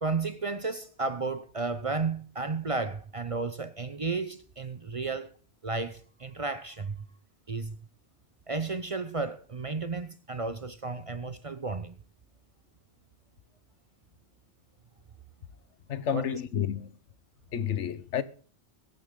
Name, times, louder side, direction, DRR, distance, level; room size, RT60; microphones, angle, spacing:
voice 1, 0.0-5.3 5.6-7.0 7.5-7.8 8.5-11.9 16.1-16.3, right 4 dB, 35° right, 0.6 m, -33 dB
voice 2, 15.9-16.9 17.5-18.2, left 9 dB, 85° left, 1.2 m, -30 dB
22.0 x 9.4 x 3.8 m
omnidirectional pair, 1.2 m